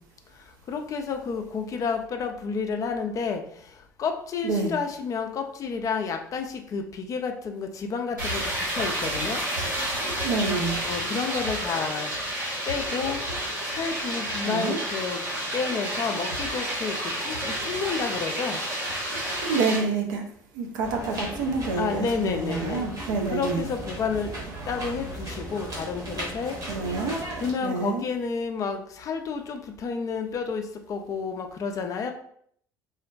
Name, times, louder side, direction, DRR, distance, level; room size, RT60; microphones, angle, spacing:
voice 1, 0.7-3.4 4.0-8.4 8.7-9.4 10.8-12.1 12.7-13.2 13.7-15.2 15.5-17.0 17.2-18.6 21.7-22.9 23.3-26.6 27.4-32.1, left 5 dB, 35° left, 5 dB, 0.3 m, -30 dB
sound 1, 8.2-19.8, right 1 dB, 85° right, 1.2 m, -30 dB
voice 2, 10.2-10.8 14.4-14.8 19.5-20.2 20.5-23.7 26.7-27.2 27.6-28.0, right 4 dB, 70° right, 2 dB, 0.4 m, -27 dB
sound 2, 20.8-27.5, right 1 dB, 35° right, 0.9 m, -36 dB
2.4 x 2.1 x 2.4 m, 0.64 s
figure-of-eight pair, 60°, 10 cm